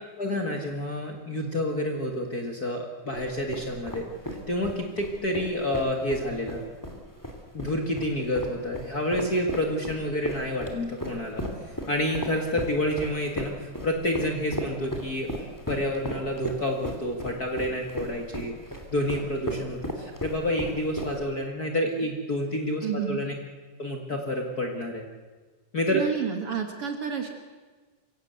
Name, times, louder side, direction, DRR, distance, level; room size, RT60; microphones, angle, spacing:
voice 1, 0.2-4.1 4.5-6.6 7.5-11.4 11.9-15.3 15.7-18.5 18.9-23.3 23.8-25.0 25.7-26.0, left 1 dB, 35° left, 2 dB, 1.8 m, -29 dB
sound 1, 3.1-21.4, equal, 5° left, 2.4 m, -36 dB
voice 2, 22.8-23.2 25.9-27.3, right 7 dB, 50° right, 5 dB, 2.1 m, -30 dB
24.5 x 16.5 x 8.1 m, 1.4 s
omnidirectional pair, 3.8 m